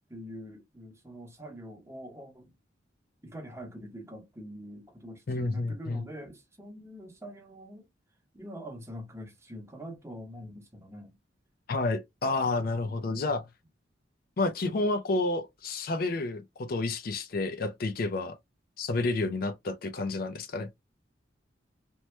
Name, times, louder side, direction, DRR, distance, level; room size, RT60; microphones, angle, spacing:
voice 1, 0.1-2.5 3.2-7.8 8.3-11.1 12.6-13.4, equal, 15° right, 0.8 m, -44 dB
voice 2, 5.3-6.0 11.7-13.4 14.4-18.4 18.8-20.7, left 3 dB, 50° left, 0.4 m, -30 dB
3.0 x 2.1 x 3.1 m
head